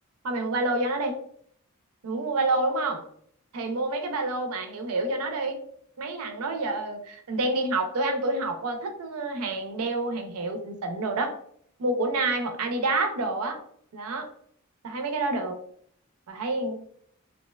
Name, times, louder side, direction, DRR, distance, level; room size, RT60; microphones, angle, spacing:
voice 1, 0.2-1.2 2.0-3.0 3.5-5.6 6.0-11.3 11.8-13.6 13.9-14.3 14.8-15.6 16.3-16.8, right 2 dB, 75° right, 5 dB, 0.5 m, -28 dB
2.6 x 2.1 x 2.2 m, 0.64 s
head